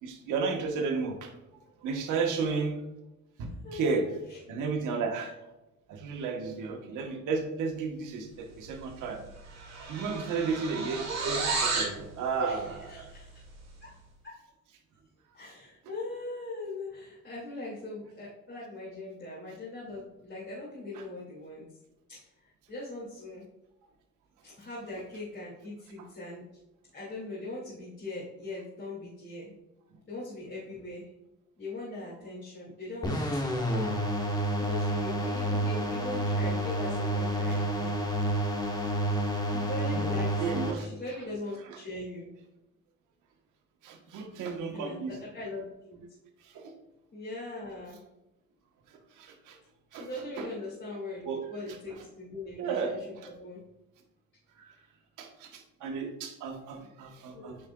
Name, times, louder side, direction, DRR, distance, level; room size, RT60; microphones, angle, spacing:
voice 1, 0.0-1.3 1.8-2.8 3.4-4.1 4.5-5.4 5.9-9.2 9.9-13.1 20.9-21.0 26.0-26.1 39.0-39.1 39.9-40.1 40.4-40.9 41.6-41.8 43.8-45.2 46.4-46.7 48.9-49.6 49.9-50.5 51.2-52.0 52.6-53.3 54.6-54.8 55.2-57.7, right 4 dB, 90° right, 3 dB, 1.1 m, -33 dB
voice 2, 3.6-4.4 12.4-12.6 12.9-13.3 13.8-14.0 14.2-14.4 15.3-21.6 22.1-22.3 22.7-23.4 24.4-26.5 26.9-29.5 30.1-31.1 31.6-38.0 39.5-42.3 44.7-45.6 45.9-46.0 47.1-48.0 49.9-53.0 53.4-53.6 57.3-57.5, left 2 dB, 40° left, -6 dB, 2.2 m, -40 dB
sound 1, 8.8-9.0 9.3-12.0, right 4 dB, 60° right, 2.1 m, -32 dB
sound 2, 33.0-40.7, right 1 dB, 15° left, 1.2 m, -29 dB
8.9 x 4.8 x 2.3 m, 0.94 s
cardioid pair, 90°, 30 cm